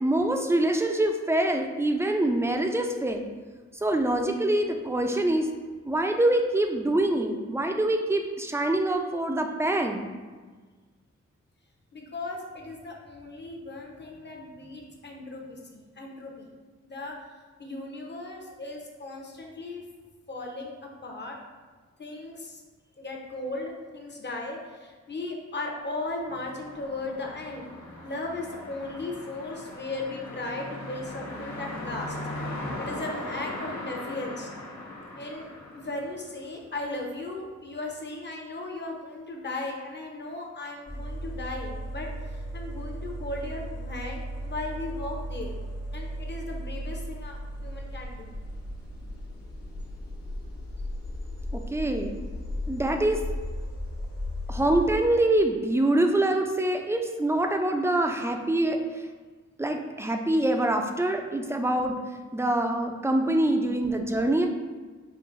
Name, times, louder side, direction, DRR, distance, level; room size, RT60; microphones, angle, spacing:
voice 1, 0.0-3.3 3.8-5.5 5.8-10.1 51.5-52.1 52.7-53.2 54.5-59.1 59.6-62.0 62.3-64.5, right 1 dB, 10° right, 3 dB, 0.4 m, -25 dB
voice 2, 11.9-16.5 16.8-17.2 17.6-19.8 20.3-21.4 22.0-22.6 23.0-27.7 28.0-32.2 32.4-34.5 35.2-45.5 45.9-48.3 54.5-54.6, left 2 dB, 40° left, 0 dB, 0.9 m, -37 dB
sound 1, 26.3-36.5, left 1 dB, 75° left, 0.8 m, -39 dB
sound 2, 40.9-55.1, equal, 55° left, 1.0 m, -36 dB
5.5 x 2.6 x 2.6 m, 1.4 s
cardioid pair, 55°, 29 cm